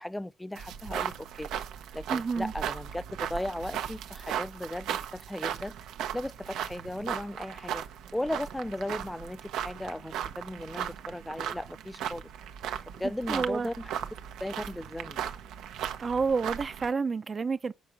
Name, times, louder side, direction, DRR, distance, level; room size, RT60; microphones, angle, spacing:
voice 1, 0.0-1.5 1.9-3.0 3.3-5.7 6.1-7.8 8.1-12.3 12.9-13.9 14.4-15.3, left 1 dB, 10° left, 0.4 m, -36 dB
sound 1, 0.5-16.9, right 10 dB, 90° right, 0.8 m, -37 dB
voice 2, 2.1-2.5 13.3-13.7 16.0-17.7, right 5 dB, 35° right, 0.6 m, -29 dB
6.1 x 4.8 x 6.7 m
cardioid pair, 90°, 0 cm